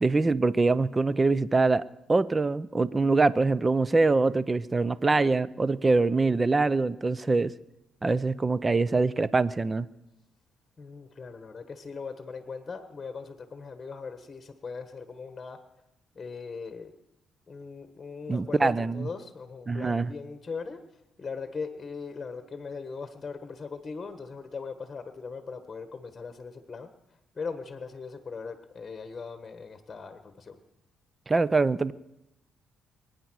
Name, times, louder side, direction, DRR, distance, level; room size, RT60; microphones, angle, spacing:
voice 1, 0.0-7.5 8.0-9.9 18.3-19.1 19.7-20.1 31.3-31.9, right 3 dB, 25° right, 18 dB, 0.6 m, -24 dB
voice 2, 10.8-15.6 16.1-16.9 17.5-20.8 21.2-26.9 27.3-30.6, left 5 dB, 30° left, 9 dB, 1.4 m, -39 dB
23.5 x 9.6 x 6.3 m, 0.88 s
cardioid pair, 90°, 0 cm